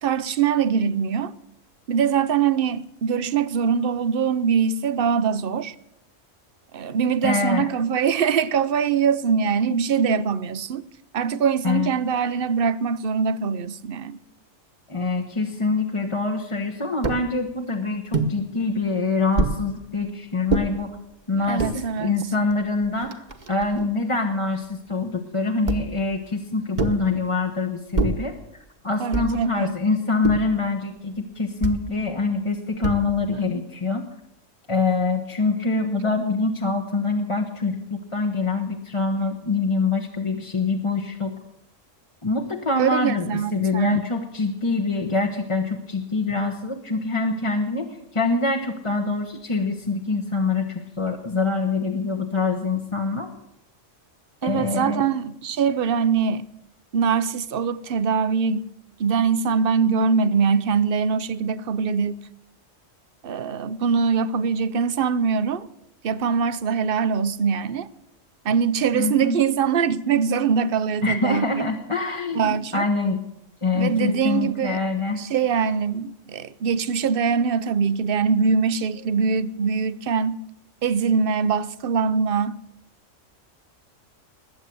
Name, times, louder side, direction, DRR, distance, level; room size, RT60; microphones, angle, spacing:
voice 1, 0.0-1.3 1.9-5.7 6.7-10.9 11.1-14.2 21.3-22.1 29.0-29.8 42.8-44.0 54.4-56.4 56.9-58.6 59.0-62.2 63.2-65.7 66.0-67.9 68.4-71.6 72.3-72.8 73.7-74.8 75.2-80.4 80.8-82.5, right 6 dB, 55° right, 0.8 m, -23 dB
voice 2, 7.2-7.7 11.6-11.9 14.9-21.0 21.3-23.2 23.5-28.4 28.8-34.1 34.7-41.3 42.2-53.3 54.4-55.1 68.9-69.4 71.0-73.2 73.6-75.2, left 3 dB, 25° left, 1.1 m, -25 dB
sound 1, 17.0-17.3 18.1-18.4 19.4-19.6 20.5-20.7 21.4-21.8 22.5-22.6 22.8-23.8 25.7-26.0 26.8-27.1 27.9-28.3 29.1-29.5 30.2-30.6 31.6-31.9 32.8-33.3, right 3 dB, 35° right, 1.2 m, -25 dB
20.5 x 8.1 x 7.7 m
omnidirectional pair, 1.3 m